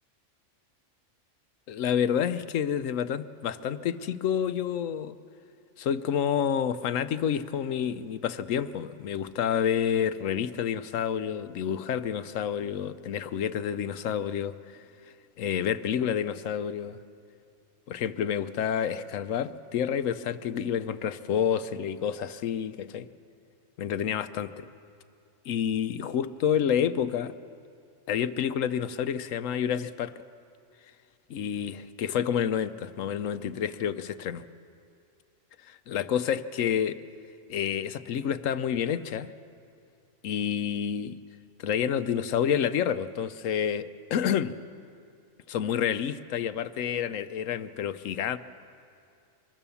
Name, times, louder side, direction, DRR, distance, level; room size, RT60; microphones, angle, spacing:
voice 1, 1.7-5.2 5.8-14.5 15.4-17.0 17.9-23.1 23.8-24.7 25.5-27.3 28.1-30.1 31.3-34.4 35.7-37.0 37.5-39.3 40.2-41.2 41.6-44.6 45.5-48.4, left 8 dB, 85° left, 13 dB, 1.1 m, -29 dB
24.5 x 20.0 x 7.1 m, 2.5 s
omnidirectional pair, 1.3 m